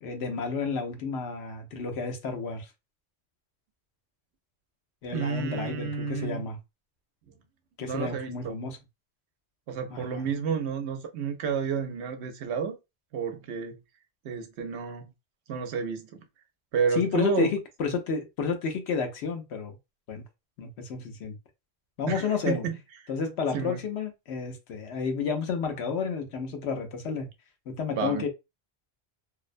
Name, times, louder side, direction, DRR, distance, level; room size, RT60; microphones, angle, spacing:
voice 1, 0.0-2.7 5.0-6.6 7.8-8.8 9.9-10.3 16.9-19.7 20.1-20.2 20.6-21.4 22.0-22.6 23.1-27.3 27.7-28.3, left 5 dB, 75° left, 0.9 m, -31 dB
voice 2, 5.1-6.4 7.8-8.5 9.7-12.8 13.1-13.8 14.2-15.0 15.5-16.2 16.7-17.5 22.1-22.8 23.5-23.8 27.9-28.3, right 6 dB, 80° right, 0.9 m, -30 dB
2.6 x 2.0 x 2.4 m
omnidirectional pair, 1.1 m